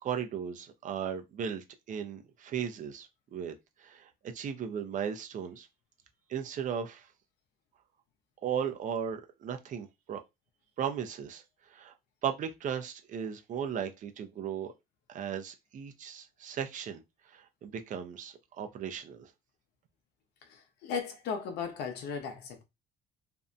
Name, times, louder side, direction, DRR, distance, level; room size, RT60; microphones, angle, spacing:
voice 1, 0.0-3.5 3.8-5.7 6.3-7.1 8.4-10.2 10.8-11.4 11.7-11.9 12.2-14.7 15.1-19.3, right 8 dB, 50° right, 0.5 m, -36 dB
voice 2, 20.4-22.6, left 6 dB, 75° left, 0.7 m, -36 dB
2.6 x 2.1 x 2.5 m
cardioid pair, 110°, 17 cm